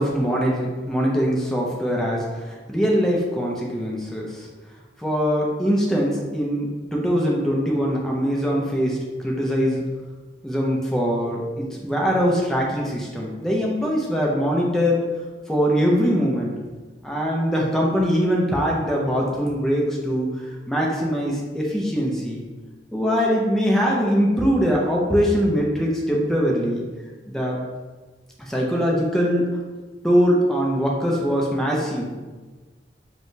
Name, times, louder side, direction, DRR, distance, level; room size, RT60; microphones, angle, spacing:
voice 1, 0.0-4.5 5.0-9.0 9.2-9.8 10.4-15.1 15.5-16.6 17.0-20.4 20.7-22.4 22.9-26.8 27.3-27.6 28.4-29.6 30.0-32.2, equal, 5° left, -3 dB, 0.5 m, -22 dB
4.6 x 2.2 x 2.7 m, 1.3 s
head